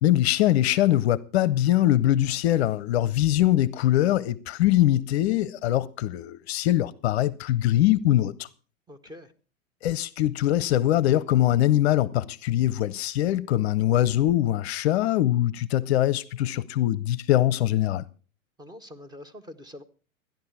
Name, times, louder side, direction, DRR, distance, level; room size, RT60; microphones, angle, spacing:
voice 1, 0.0-8.5 9.8-18.0, left 13 dB, 50° left, 0.6 m, -22 dB
voice 2, 8.9-9.3 18.6-19.8, left 1 dB, 10° right, 0.9 m, -44 dB
13.5 x 10.5 x 4.7 m
figure-of-eight pair, 100°, 41 cm